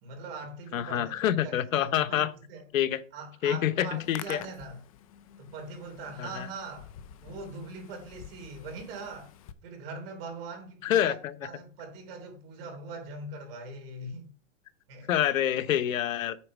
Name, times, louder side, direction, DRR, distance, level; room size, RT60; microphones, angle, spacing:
voice 1, 0.0-2.6 3.1-4.8 5.4-6.9 7.2-9.3 9.6-14.3 14.9-15.1, right 3 dB, 45° right, 3.2 m, -42 dB
voice 2, 0.7-2.3 2.7-3.0 3.4-4.4 6.2-6.5 10.8-11.3 15.1-16.4, left 11 dB, 90° left, 0.9 m, -27 dB
Hands, 3.8-9.5, left 10 dB, 30° left, 0.4 m, -48 dB
8.7 x 4.3 x 6.1 m
supercardioid pair, 160°, 39 cm